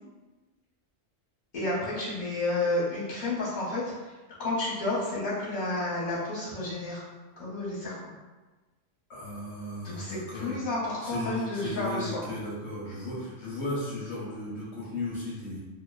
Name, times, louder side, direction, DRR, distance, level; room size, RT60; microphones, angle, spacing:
voice 1, 1.5-3.8 4.4-7.0 7.4-7.9 10.0-12.2, left 2 dB, 40° left, -8 dB, 1.0 m, -30 dB
voice 2, 9.1-10.6 11.0-15.6, left 2 dB, 75° left, -7 dB, 0.9 m, -35 dB
2.6 x 2.1 x 2.3 m, 1.2 s
omnidirectional pair, 1.2 m